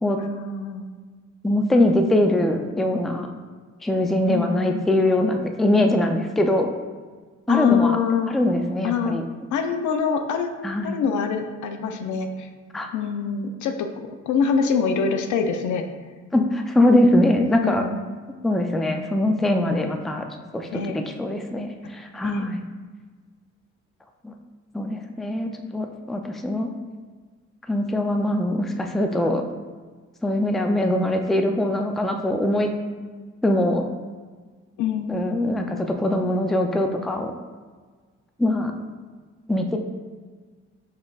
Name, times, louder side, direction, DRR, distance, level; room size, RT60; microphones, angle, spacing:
voice 1, 0.2-0.9 4.3-4.9 7.5-8.3 8.8-9.2 9.5-10.5 10.8-12.5 12.9-13.9 14.3-15.9 17.6-18.1 19.5-19.9 20.7-21.0 22.2-22.5 34.8-35.3, left 6 dB, 75° left, 6 dB, 0.5 m, -25 dB
voice 2, 1.4-3.3 3.8-6.7 7.5-8.0 8.3-9.2 10.6-11.0 12.7-12.9 16.3-17.8 18.4-20.2 20.5-22.6 24.2-24.3 24.7-26.7 27.7-29.4 30.2-32.7 33.4-33.8 35.1-37.3 38.4-38.7 39.5-39.8, left 1 dB, ahead, 4 dB, 0.3 m, -22 dB
5.3 x 3.9 x 2.3 m, 1.5 s
cardioid pair, 90°, 30 cm